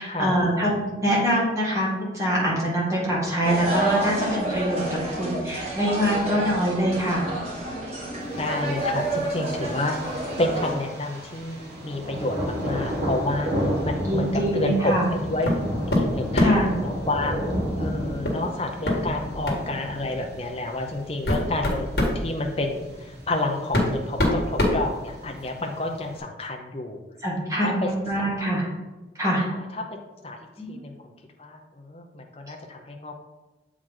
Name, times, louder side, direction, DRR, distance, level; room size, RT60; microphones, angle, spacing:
voice 1, 0.0-4.8 5.2-7.3 14.0-15.1 16.4-16.7 27.2-28.6 29.2-29.5 30.6-30.8, equal, 15° right, -5 dB, 2.0 m, -24 dB
sound 1, 3.4-10.7, right 1 dB, 35° right, 1.5 m, -29 dB
Thunder, 8.2-26.2, equal, 65° right, 1.7 m, -33 dB
voice 2, 8.4-11.6 11.8-14.3 14.5-15.6 15.9-17.4 17.8-27.0 27.5-27.9 28.2-28.5 29.4-29.8 30.2-30.4 30.7-30.9 31.4-33.2, left 2 dB, 30° left, 2 dB, 0.6 m, -29 dB
sound 2, 15.4-15.6 15.9-16.7 18.2-18.4 18.8-19.0 19.4-19.7 20.5-20.6 21.1-22.2 23.2-23.3 23.7-25.5, left 1 dB, 60° left, 1.6 m, -23 dB
7.5 x 4.8 x 3.8 m, 1.1 s
head